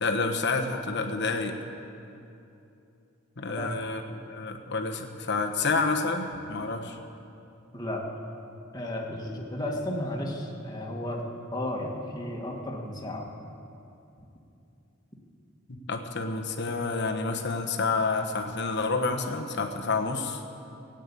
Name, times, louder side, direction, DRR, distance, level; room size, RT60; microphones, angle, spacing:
voice 1, 0.0-1.6 3.4-7.0 15.7-20.4, left 3 dB, 55° left, 4 dB, 1.2 m, -29 dB
voice 2, 8.7-13.3, left 1 dB, 20° left, -1 dB, 1.9 m, -33 dB
17.5 x 9.2 x 8.5 m, 2.7 s
head